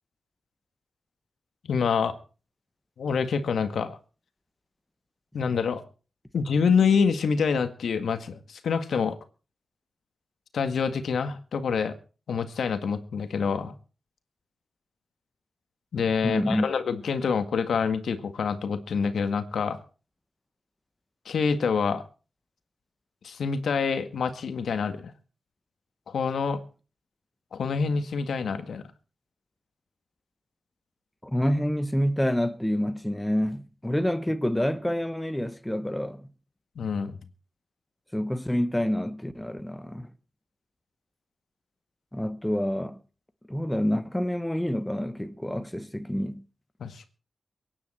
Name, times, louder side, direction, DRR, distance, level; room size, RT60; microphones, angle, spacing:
voice 1, 1.6-2.1 3.0-4.0 5.3-5.8 6.3-9.2 10.5-11.9 12.3-13.7 15.9-19.8 21.3-22.0 23.2-25.1 26.1-26.6 27.5-28.8 36.8-37.1 46.8-47.1, left 6 dB, 90° left, 1.9 m, -26 dB
voice 2, 16.2-16.7 31.2-36.3 38.1-40.1 42.1-43.0 43.5-46.4, equal, 5° left, 1.1 m, -27 dB
23.5 x 10.0 x 4.4 m
wide cardioid pair, 140°, 0 cm